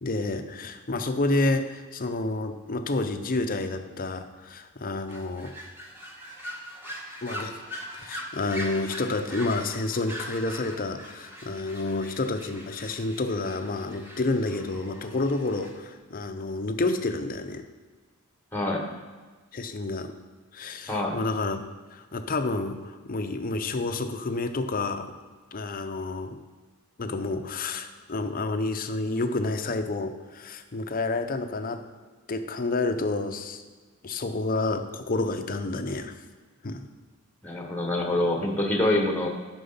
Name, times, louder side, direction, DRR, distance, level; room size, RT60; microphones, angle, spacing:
voice 1, 0.0-5.5 7.2-7.6 7.9-17.6 19.5-20.1 20.5-25.1 25.5-26.4 27.0-31.8 32.3-33.6 34.0-36.2 36.6-36.9, left 2 dB, 40° left, 8 dB, 0.7 m, -29 dB
sound 1, 5.1-15.7, equal, 10° right, 1.3 m, -41 dB
voice 2, 18.5-18.9 20.9-21.2 37.4-39.3, left 1 dB, 10° left, 2 dB, 1.1 m, -25 dB
10.5 x 6.2 x 5.6 m, 1.4 s
head